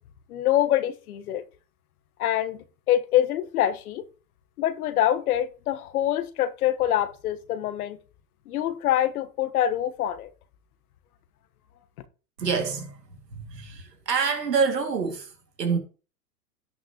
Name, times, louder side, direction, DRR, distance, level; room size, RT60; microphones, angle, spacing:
voice 1, 0.3-1.4 2.2-4.0 4.6-8.0 8.5-10.3, left 12 dB, 65° left, 1.4 m, -25 dB
voice 2, 12.4-15.8, right 5 dB, 85° right, 2.5 m, -27 dB
17.0 x 6.0 x 3.0 m
hypercardioid pair, 110°, 48 cm